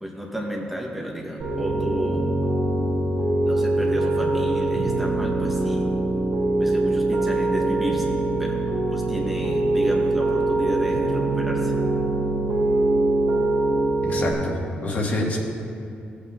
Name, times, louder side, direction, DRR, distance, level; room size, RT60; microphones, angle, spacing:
voice 1, 0.0-2.3 3.5-5.9 6.6-8.1 8.4-11.7, equal, 5° right, -1 dB, 0.8 m, -32 dB
Piano, 1.4-14.3, right 2 dB, 90° right, 2.4 m, -23 dB
voice 2, 14.1-15.4, left 1 dB, 45° left, -1 dB, 1.4 m, -27 dB
16.0 x 8.4 x 2.4 m, 2.6 s
wide cardioid pair, 150°, 4 cm